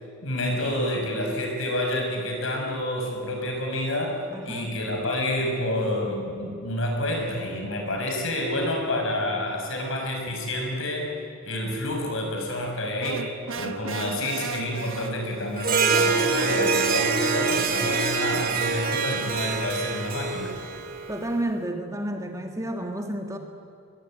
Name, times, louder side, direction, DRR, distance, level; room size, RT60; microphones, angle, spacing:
voice 1, 0.2-11.1 11.4-20.5, left 1 dB, 65° left, 1 dB, 6.2 m, -28 dB
voice 2, 4.3-4.7 21.1-23.4, right 1 dB, 15° right, 4 dB, 1.6 m, -30 dB
sound 1, 13.0-15.6, right 4 dB, 65° right, 1.3 m, -35 dB
Harp, 15.6-21.3, right 4 dB, 40° right, 2.3 m, -25 dB
22.5 x 21.5 x 9.1 m, 2.5 s
head